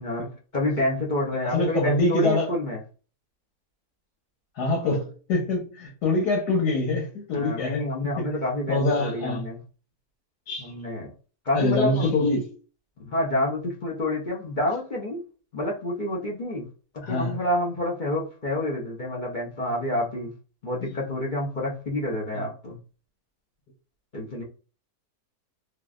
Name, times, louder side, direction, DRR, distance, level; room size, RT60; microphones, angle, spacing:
voice 1, 0.0-2.8 7.3-9.6 10.6-11.1 11.4-12.1 13.0-15.2 15.5-16.7 16.9-20.3 20.6-22.8 24.1-24.4, left 1 dB, 45° left, 0.7 m, -28 dB
voice 2, 1.4-2.5 4.6-7.8 8.2-8.3 8.7-9.4 10.5-10.7 11.5-12.5 17.0-17.4, left 2 dB, 90° left, 1.6 m, -24 dB
3.3 x 2.4 x 2.4 m
omnidirectional pair, 1.7 m